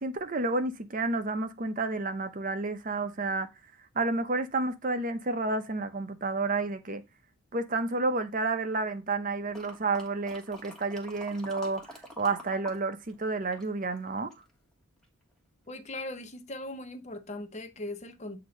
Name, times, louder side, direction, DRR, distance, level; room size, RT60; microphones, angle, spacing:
voice 1, 0.0-3.5 3.9-7.0 7.5-14.3, right 3 dB, 40° right, 0.6 m, -30 dB
sound 1, 9.5-12.8 13.0-14.5 15.0-15.1, equal, 5° left, 1.2 m, -46 dB
voice 2, 15.7-18.4, left 2 dB, 30° left, 0.7 m, -39 dB
8.0 x 2.9 x 5.0 m
head